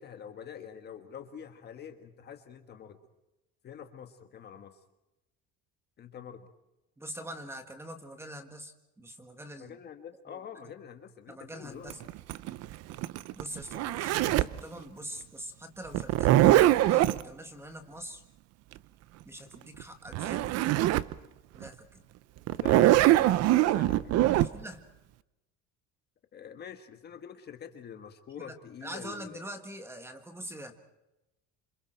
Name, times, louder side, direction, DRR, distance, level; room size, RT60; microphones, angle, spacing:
voice 1, 0.0-3.0 3.6-4.8 6.0-6.5 9.6-11.9 22.6-24.5 26.3-29.5, left 8 dB, 35° left, 7 dB, 1.4 m, -46 dB
voice 2, 7.0-9.8 10.3-10.7 11.3-12.0 13.3-16.4 16.9-18.2 19.2-20.6 21.5-22.0 24.4-24.8 28.4-30.8, right 1 dB, 10° right, 7 dB, 1.7 m, -44 dB
Zipper (clothing), 11.9-14.6 15.9-17.2 19.8-19.9 20.1-21.1 21.6-21.7 22.5-24.5, right 15 dB, 55° right, 0.7 m, -23 dB
28.0 x 26.0 x 4.5 m, 0.94 s
cardioid pair, 180°, 30 cm